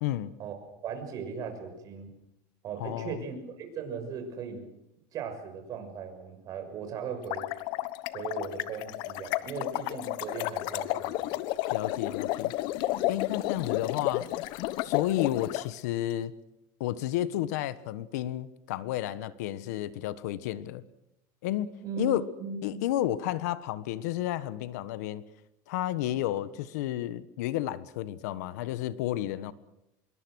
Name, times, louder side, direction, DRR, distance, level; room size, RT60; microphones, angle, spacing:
voice 1, 0.0-0.3 2.8-3.2 11.7-12.5 13.1-14.3 14.8-16.3 16.8-20.8 21.4-22.2 22.6-25.2 25.7-29.5, left 13 dB, 85° left, 15 dB, 1.4 m, -31 dB
voice 2, 0.8-2.1 2.6-4.7 5.1-7.5 8.1-11.4 13.0-13.2 21.8-22.9, right 6 dB, 45° right, 6 dB, 6.3 m, -38 dB
sound 1, 7.1-15.6, left 16 dB, 60° left, 1.1 m, -32 dB
25.5 x 22.5 x 6.4 m, 0.85 s
supercardioid pair, 135°, 9 cm